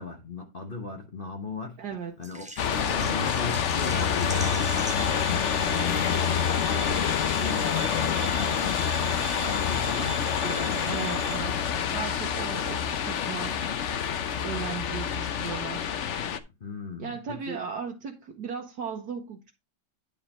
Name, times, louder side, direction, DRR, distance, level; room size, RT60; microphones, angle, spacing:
voice 1, 0.0-1.8 2.2-8.8 9.4-11.2 16.6-17.6, left 3 dB, 35° left, 1.1 m, -37 dB
voice 2, 1.8-2.1 10.9-11.5 11.9-13.6 14.4-15.9 17.0-19.5, right 6 dB, 70° right, 1.6 m, -36 dB
Water / Liquid, 2.2-7.8 8.1-8.2 8.6-8.7, right 1 dB, 5° right, 0.6 m, -42 dB
sound 1, 2.6-16.4, left 8 dB, 55° left, 0.9 m, -27 dB
sound 2, 4.2-11.4, right 6 dB, 90° right, 1.8 m, -40 dB
9.7 x 5.3 x 4.3 m
omnidirectional pair, 1.8 m